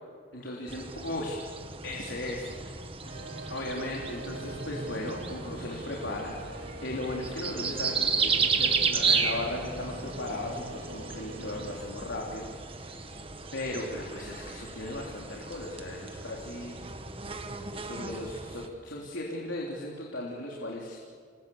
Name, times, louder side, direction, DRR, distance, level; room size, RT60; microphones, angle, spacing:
voice 1, 0.3-1.4 1.8-2.8 3.5-13.0 13.5-16.8 17.8-21.0, left 1 dB, 80° left, -2 dB, 3.5 m, -37 dB
sound 1, 0.7-18.7, right 5 dB, 30° right, 1.5 m, -33 dB
sound 2, 3.0-11.8, right 2 dB, 65° right, 3.4 m, -45 dB
28.5 x 21.5 x 7.3 m, 2.1 s
head